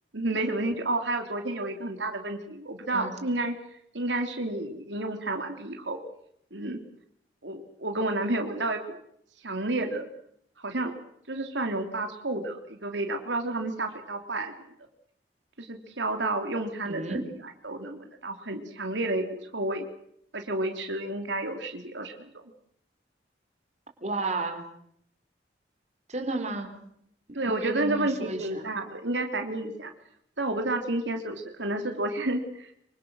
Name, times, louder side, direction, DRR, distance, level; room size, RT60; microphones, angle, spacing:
voice 1, 0.1-3.5 3.9-6.0 6.5-6.8 7.4-9.0 9.4-10.0 10.6-10.9 11.3-14.5 15.6-17.2 17.6-19.8 20.3-22.3 27.3-29.9 30.4-32.7, right 2 dB, 85° right, 5 dB, 3.2 m, -30 dB
voice 2, 16.8-17.3 24.0-24.7 26.1-26.8 27.3-28.7, right 2 dB, 40° right, 4 dB, 3.9 m, -33 dB
26.5 x 25.0 x 6.4 m, 0.71 s
head